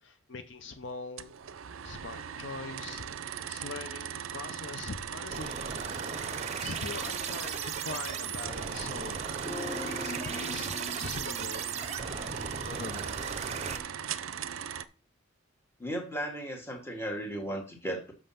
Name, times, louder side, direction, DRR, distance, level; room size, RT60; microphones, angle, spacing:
voice 1, 0.0-1.3 1.8-3.0 3.4-6.0 6.6-9.2 9.9-12.3 12.7-13.3, left 3 dB, 60° left, 8 dB, 0.7 m, -42 dB
sound 1, 1.2-14.8, right 9 dB, 75° right, 0.5 m, -39 dB
sound 2, 5.3-13.8, right 5 dB, 30° right, 0.6 m, -37 dB
sound 3, 9.4-12.7 13.0-13.1, left 1 dB, 35° left, 2.0 m, -42 dB
voice 2, 15.8-18.1, right 1 dB, 10° left, 2 dB, 1.5 m, -35 dB
6.4 x 5.4 x 5.7 m, 0.37 s
head